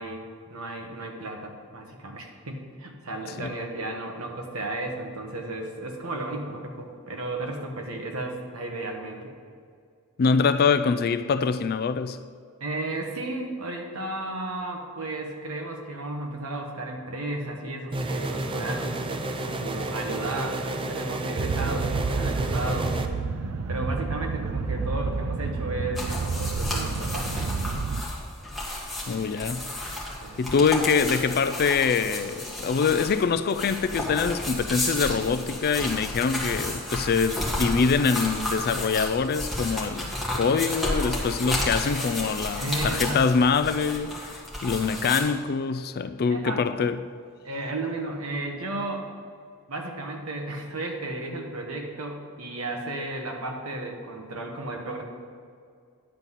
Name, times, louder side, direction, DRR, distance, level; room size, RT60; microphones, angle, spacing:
voice 1, 0.0-9.3 12.6-18.9 19.4-23.0 23.7-27.5 30.2-30.4 42.6-43.2 46.3-46.6 47.4-49.1 49.7-55.0, right 2 dB, 70° right, 1.4 m, -34 dB
voice 2, 10.2-12.2 29.1-29.7 30.4-47.0, left 5 dB, 45° left, 0.4 m, -24 dB
sound 1, 17.9-23.1, right 2 dB, 25° right, 0.5 m, -31 dB
sound 2, 21.4-28.0, right 4 dB, 90° right, 0.6 m, -30 dB
sound 3, 25.9-45.2, left 1 dB, ahead, 1.7 m, -32 dB
10.5 x 4.1 x 7.4 m
head